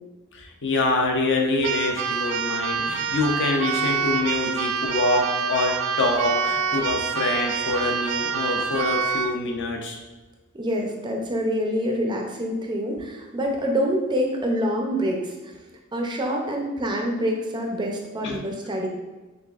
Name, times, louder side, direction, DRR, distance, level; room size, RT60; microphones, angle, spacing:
voice 1, 0.3-10.0 18.2-18.4, left 2 dB, 55° left, 1 dB, 0.6 m, -25 dB
Keyboard (musical), 1.6-9.4, right 6 dB, 85° right, 0.3 m, -26 dB
voice 2, 10.5-15.5 15.9-18.9, equal, 20° right, 1 dB, 0.4 m, -26 dB
6.5 x 2.4 x 2.4 m, 1.2 s
head